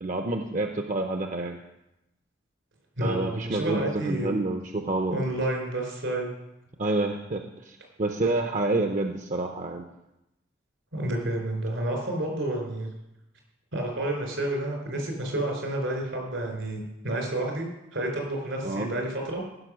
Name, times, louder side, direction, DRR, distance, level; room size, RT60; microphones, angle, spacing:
voice 1, 0.0-1.6 3.0-5.2 6.8-9.8 18.6-18.9, right 2 dB, 45° right, 4 dB, 0.7 m, -28 dB
voice 2, 3.0-4.3 5.1-6.3 10.9-12.9 13.7-17.7 17.9-19.4, right 1 dB, 80° right, 2 dB, 3.8 m, -30 dB
15.0 x 5.8 x 6.2 m, 0.92 s
head